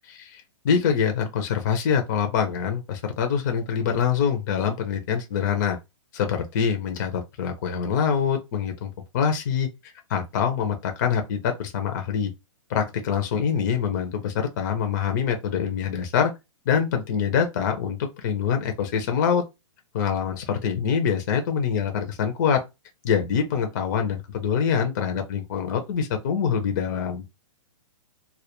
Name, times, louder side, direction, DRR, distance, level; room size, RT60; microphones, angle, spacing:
voice 1, 0.1-5.8 6.1-12.3 12.7-16.3 16.7-19.4 19.9-22.6 23.0-27.2, left 7 dB, 35° left, 0.4 m, -25 dB
2.1 x 2.1 x 2.9 m
hypercardioid pair, 165°, 17 cm